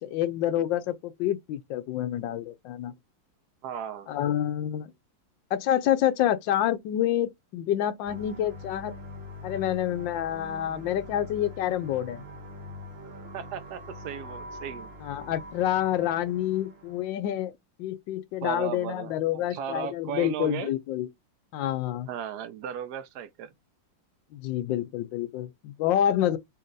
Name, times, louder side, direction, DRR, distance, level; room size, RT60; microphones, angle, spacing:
voice 1, 0.0-2.9 4.1-4.9 5.5-8.9 9.4-12.2 15.0-17.5 17.8-21.1 21.5-22.1 24.3-26.4, left 11 dB, 80° left, 1.3 m, -28 dB
voice 2, 3.6-4.1 13.3-14.9 18.4-20.7 22.1-23.5, right 9 dB, 65° right, 1.1 m, -36 dB
sound 1, 8.0-17.0, left 1 dB, 40° right, 1.1 m, -43 dB
4.2 x 2.7 x 3.9 m
omnidirectional pair, 2.0 m